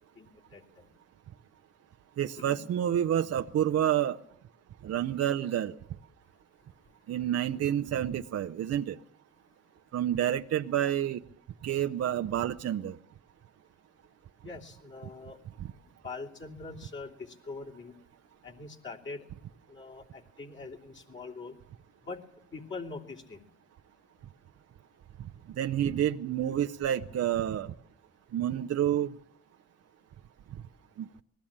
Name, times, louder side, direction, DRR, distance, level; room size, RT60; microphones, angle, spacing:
voice 1, 0.2-0.9 2.4-2.5 14.4-15.4 16.0-17.9 18.4-19.3 19.7-21.6 22.0-22.2 22.5-23.4, left 4 dB, 40° left, -1 dB, 3.1 m, -43 dB
voice 2, 2.2-4.2 4.8-5.7 7.1-9.0 9.9-11.2 11.6-13.0 25.6-27.7 28.3-29.1, right 10 dB, 55° right, 8 dB, 0.7 m, -28 dB
20.5 x 16.0 x 8.8 m, 0.70 s
cardioid pair, 90°, 30 cm